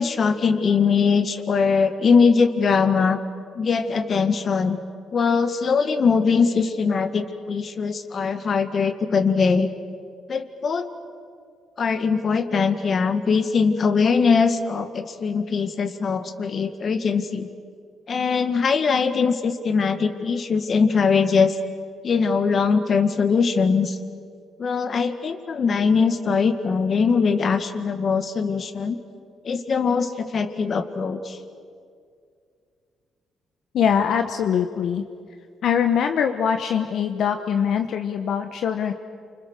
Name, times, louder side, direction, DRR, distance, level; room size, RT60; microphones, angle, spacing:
voice 1, 0.0-3.2 3.6-4.8 5.1-9.7 10.3-10.9 11.8-17.5 18.1-21.5 22.0-24.0 24.6-29.0 29.4-31.4, left 5 dB, 45° left, 9 dB, 1.8 m, -21 dB
voice 2, 33.7-35.0 35.6-38.9, left 8 dB, 70° left, 6 dB, 1.1 m, -23 dB
29.0 x 26.0 x 6.6 m, 2.2 s
cardioid pair, 90°, 0 cm